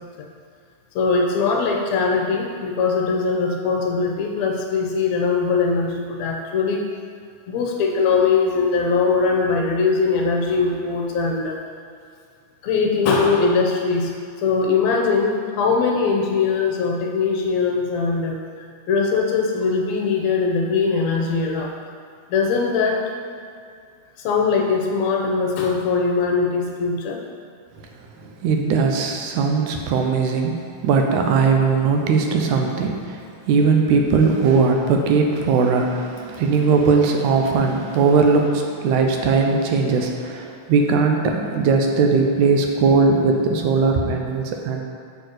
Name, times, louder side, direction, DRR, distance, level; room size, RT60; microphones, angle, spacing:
voice 1, 1.0-6.8 7.5-11.6 12.6-14.1 14.4-18.4 18.9-21.7 22.3-23.1 24.2-27.2, left 4 dB, 70° left, 1 dB, 1.9 m, -21 dB
voice 2, 28.2-44.8, right 4 dB, 75° right, 3 dB, 2.1 m, -19 dB
6.8 x 4.1 x 6.4 m, 2.3 s
omnidirectional pair, 3.5 m